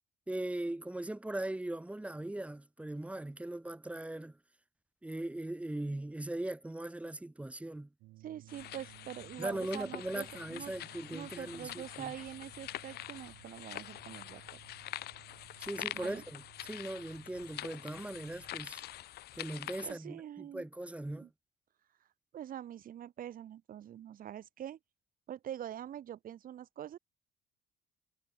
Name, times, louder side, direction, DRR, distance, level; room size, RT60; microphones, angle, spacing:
voice 1, 0.3-4.4 5.0-7.9 9.4-12.1 15.6-18.8 19.4-21.3, right 1 dB, 5° right, 1.0 m, -39 dB
sound 1, 8.0-18.6, right 19 dB, 85° right, 2.1 m, -59 dB
voice 2, 8.2-10.7 11.1-14.6 15.9-16.2 19.8-20.6 21.2-21.3 22.3-24.8 25.3-27.0, right 10 dB, 55° right, 3.4 m, -45 dB
sound 2, 8.5-19.9, left 14 dB, 70° left, 2.0 m, -46 dB
cardioid pair, 110°, 17 cm